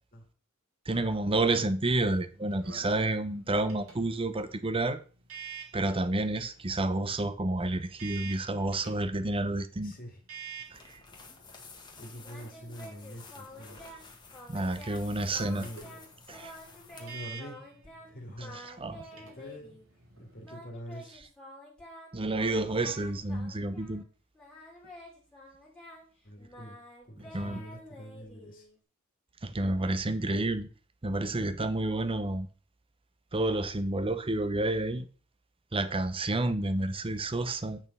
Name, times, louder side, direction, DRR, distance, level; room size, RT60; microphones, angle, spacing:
voice 1, 0.9-5.0 5.7-10.0 10.7-11.0 14.5-15.7 16.3-16.5 18.8-19.0 22.1-24.0 27.3-27.6 29.4-30.7 31.0-32.5 33.3-35.1 35.7-37.8, right 2 dB, 25° right, 0.7 m, -30 dB
Botones elevador, 2.0-20.6, right 6 dB, 70° right, 2.0 m, -50 dB
voice 2, 9.8-10.2 12.0-13.9 14.9-16.0 16.9-17.7 18.0-19.8 20.2-21.2 26.2-26.8 27.0-28.7, equal, 45° left, 2.1 m, -46 dB
sound 1, 10.6-17.3, left 4 dB, 20° left, 1.6 m, -52 dB
Singing, 12.2-14.1 14.3-15.0 15.3-16.1 16.3-18.1 18.4-19.8 20.4-24.0 24.3-28.8, left 1 dB, 5° left, 2.5 m, -49 dB
8.9 x 4.4 x 5.3 m
head